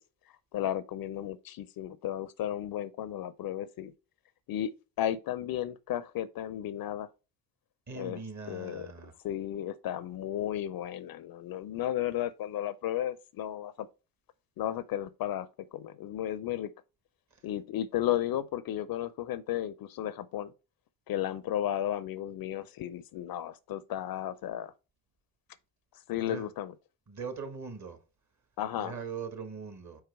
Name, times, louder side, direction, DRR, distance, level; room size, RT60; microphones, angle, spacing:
voice 1, 0.5-3.9 4.5-4.7 5.0-7.1 7.9-8.2 8.5-8.9 9.2-13.9 14.6-16.7 17.4-20.5 21.1-24.7 26.1-26.7 28.6-29.0, left 11 dB, 50° left, 0.5 m, -34 dB
voice 2, 7.9-9.1 26.3-26.5 27.1-28.0 28.8-30.0, right 5 dB, 35° right, 1.6 m, -40 dB
4.7 x 4.7 x 4.5 m
hypercardioid pair, 55°, 47 cm